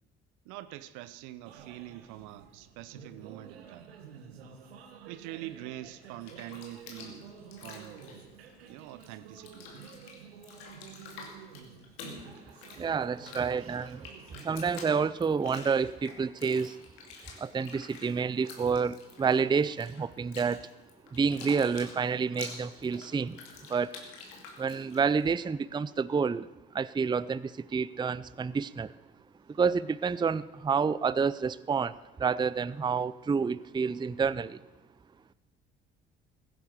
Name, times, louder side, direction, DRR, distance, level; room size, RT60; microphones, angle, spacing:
voice 1, 0.4-3.9 5.1-7.3 7.6-8.1 8.7-9.7 10.9-11.1 29.5-29.6, right 15 dB, 75° right, 0.8 m, -44 dB
sound 1, 1.4-14.5, right 7 dB, 90° right, 1.3 m, -51 dB
Bathtub (filling or washing), 6.0-9.1 9.3-25.3, left 4 dB, 80° left, 2.6 m, -48 dB
voice 2, 12.8-14.1 14.4-16.8 17.4-20.6 21.1-23.4 23.7-23.9 24.6-26.5 26.7-28.9 29.6-34.6, right 5 dB, 15° right, 0.5 m, -29 dB
16.0 x 10.0 x 6.7 m
hypercardioid pair, 55°, 30 cm